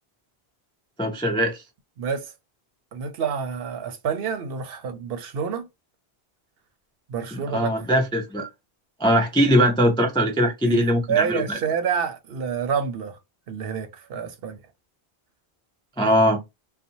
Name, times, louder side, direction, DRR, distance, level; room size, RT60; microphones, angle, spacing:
voice 1, 1.0-1.6 7.3-8.5 9.0-11.6 16.0-16.4, equal, 10° left, 0.3 m, -21 dB
voice 2, 2.0-2.3 2.9-5.7 7.1-7.8 10.6-10.8 11.1-13.2 13.5-14.6, right 7 dB, 70° right, 0.7 m, -28 dB
2.6 x 2.1 x 2.8 m
omnidirectional pair, 1.1 m